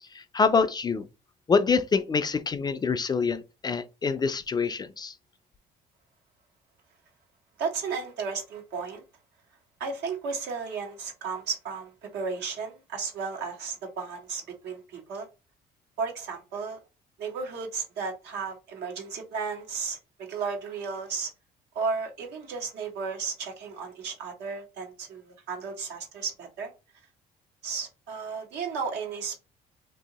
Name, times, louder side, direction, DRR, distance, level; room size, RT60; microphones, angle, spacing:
voice 1, 0.1-1.0 1.5-5.1, left 5 dB, 25° left, 0.3 m, -25 dB
voice 2, 7.6-9.0 9.8-15.3 16.0-16.8 17.2-21.3 21.7-26.7 27.6-29.4, right 5 dB, 80° right, 1.3 m, -34 dB
2.8 x 2.7 x 3.9 m
cardioid pair, 110°, 17 cm